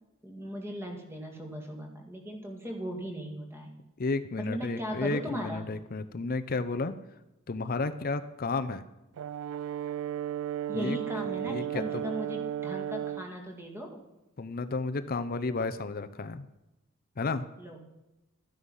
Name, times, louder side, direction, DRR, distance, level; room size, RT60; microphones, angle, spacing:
voice 1, 0.2-3.7 4.4-5.8 10.7-14.0 17.6-17.8, equal, 10° right, 2 dB, 2.0 m, -38 dB
voice 2, 4.0-6.9 7.5-8.8 10.7-11.0 11.4-12.0 14.4-16.5 17.2-17.4, left 3 dB, 45° left, 11 dB, 0.6 m, -32 dB
Brass instrument, 9.2-13.3, right 10 dB, 85° right, 0.3 m, -34 dB
13.0 x 9.8 x 5.6 m, 0.97 s
head